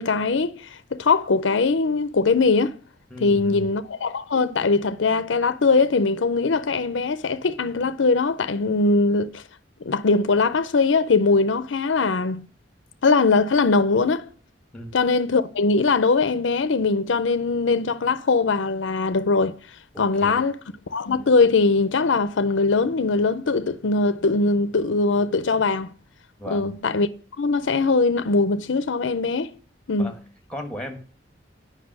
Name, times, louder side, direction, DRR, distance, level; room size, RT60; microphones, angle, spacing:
voice 1, 0.0-2.7 3.2-9.4 9.8-12.5 13.0-14.3 14.9-19.6 20.0-20.5 20.9-25.9 26.5-27.1 27.4-29.5 29.9-30.2, left 3 dB, 75° left, 0.6 m, -21 dB
voice 2, 3.1-3.7 14.7-14.9 19.9-20.4 26.4-26.7 30.0-30.2 30.5-31.0, left 1 dB, 5° left, 1.5 m, -35 dB
8.3 x 5.5 x 7.3 m
head